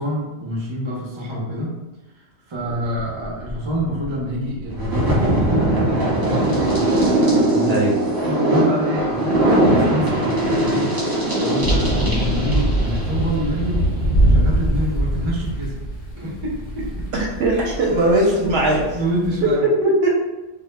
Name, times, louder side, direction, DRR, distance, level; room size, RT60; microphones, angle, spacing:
voice 1, 0.0-1.8 2.1-7.0 7.5-7.8 8.2-10.9 11.4-13.9 14.3-15.9 16.1-17.1 17.9-19.7, equal, 40° right, -3 dB, 0.4 m, -27 dB
sound 1, 2.6-15.3, right 1 dB, 20° right, 0.8 m, -21 dB
sound 2, 11.6-19.5, right 1 dB, 45° left, 0.6 m, -23 dB
voice 2, 17.1-18.8 19.8-20.1, right 1 dB, 65° right, -3 dB, 0.7 m, -19 dB
2.1 x 2.0 x 3.1 m, 1.1 s
omnidirectional pair, 1.3 m